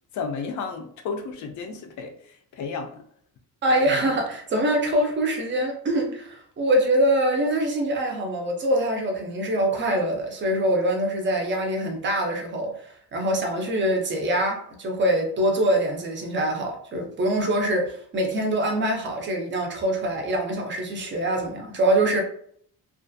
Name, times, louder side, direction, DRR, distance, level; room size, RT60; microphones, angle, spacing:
voice 1, 0.1-3.0 3.9-4.0, left 5 dB, 55° left, 5 dB, 0.5 m, -33 dB
voice 2, 3.6-22.2, right 1 dB, 30° right, 2 dB, 0.5 m, -24 dB
2.5 x 2.4 x 2.5 m, 0.63 s
cardioid pair, 160°, 37 cm